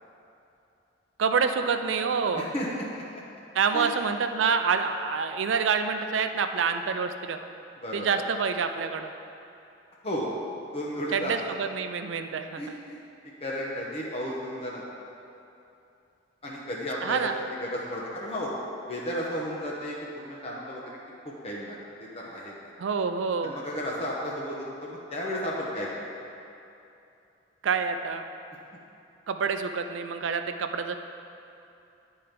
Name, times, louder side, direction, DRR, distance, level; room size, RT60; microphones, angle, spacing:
voice 1, 1.2-2.5 3.5-7.4 7.9-9.1 11.1-12.8 17.0-17.4 22.8-23.5 27.6-28.2 29.3-31.0, right 5 dB, 80° right, 7 dB, 0.4 m, -27 dB
voice 2, 2.4-3.2 3.7-3.9 7.8-8.2 10.0-10.3 10.7-11.5 12.6-13.0 13.4-14.8 16.4-17.3 17.6-18.5 18.9-20.8 21.2-22.7 23.4-25.9, equal, 35° left, -4 dB, 0.8 m, -33 dB
9.6 x 4.5 x 5.1 m, 2.8 s
head